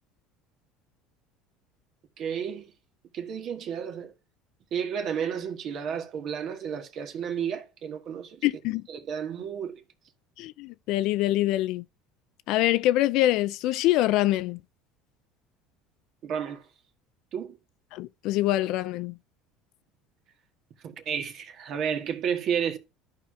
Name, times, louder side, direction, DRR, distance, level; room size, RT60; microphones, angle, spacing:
voice 1, 2.2-2.6 3.1-4.1 4.7-8.4 8.9-9.8 16.2-16.7 17.3-17.6 20.8-22.8, right 7 dB, 55° right, 1.5 m, -32 dB
voice 2, 8.4-8.8 10.4-11.8 12.5-14.6 17.9-19.2, left 15 dB, 65° left, 0.3 m, -25 dB
13.5 x 4.9 x 2.3 m
hypercardioid pair, 80°, 0 cm